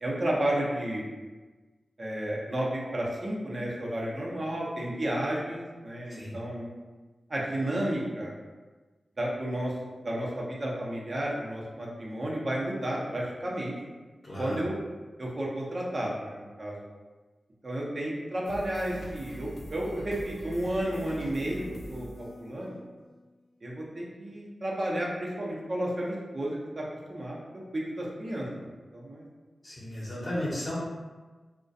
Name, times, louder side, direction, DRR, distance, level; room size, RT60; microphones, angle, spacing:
voice 1, 0.0-1.1 2.0-6.7 7.3-8.3 9.2-9.7 10.0-13.7 14.4-14.7 15.2-16.8 17.6-21.6 21.9-22.8 23.6-26.8 27.1-27.4 27.7-28.7 28.9-29.2, right 1 dB, 50° right, -4 dB, 0.6 m, -32 dB
voice 2, 14.2-14.6 29.6-30.8, left 1 dB, 55° left, -8 dB, 0.7 m, -34 dB
sound 1, 18.4-23.2, equal, 70° left, 0.3 m, -43 dB
2.3 x 2.1 x 2.6 m, 1.3 s
cardioid pair, 45°, 0 cm